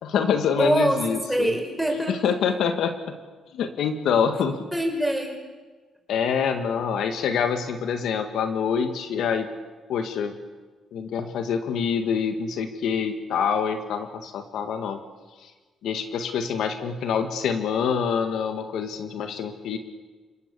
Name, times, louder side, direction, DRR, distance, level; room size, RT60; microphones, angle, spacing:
voice 1, 0.0-1.5 2.1-3.2 3.5-4.6 6.1-9.5 9.9-10.4 10.9-15.0 15.4-15.5 15.8-19.8, left 7 dB, 75° left, 7 dB, 1.8 m, -26 dB
voice 2, 0.6-1.0 1.3-2.5 4.7-5.4, right 1 dB, 5° right, 2 dB, 5.5 m, -24 dB
29.5 x 18.0 x 6.9 m, 1.4 s
cardioid pair, 90°, 0 cm